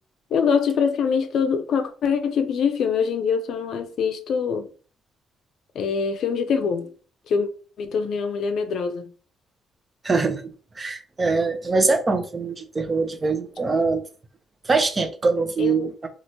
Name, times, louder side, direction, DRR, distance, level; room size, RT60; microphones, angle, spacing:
voice 1, 0.3-4.7 5.7-6.9 7.3-7.5 7.8-9.1 15.6-15.9, left 6 dB, 70° left, 0.4 m, -24 dB
voice 2, 10.0-10.4 10.8-14.0 14.7-16.1, right 4 dB, 30° right, 0.6 m, -23 dB
2.9 x 2.4 x 2.8 m
cardioid pair, 90°, 0 cm